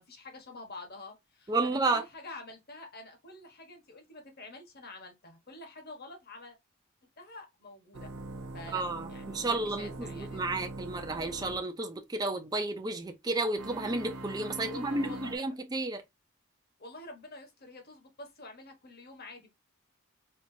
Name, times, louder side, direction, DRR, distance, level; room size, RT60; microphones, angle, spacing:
voice 1, 0.0-6.6 7.2-8.1 8.5-10.4 14.6-15.6 16.8-19.5, left 2 dB, 45° left, 1.2 m, -48 dB
voice 2, 1.5-2.0 8.7-16.0, right 2 dB, 20° right, 0.5 m, -32 dB
sound 1, 7.9-11.6 13.5-15.4, right 2 dB, 85° right, 0.7 m, -42 dB
4.4 x 2.4 x 2.7 m
head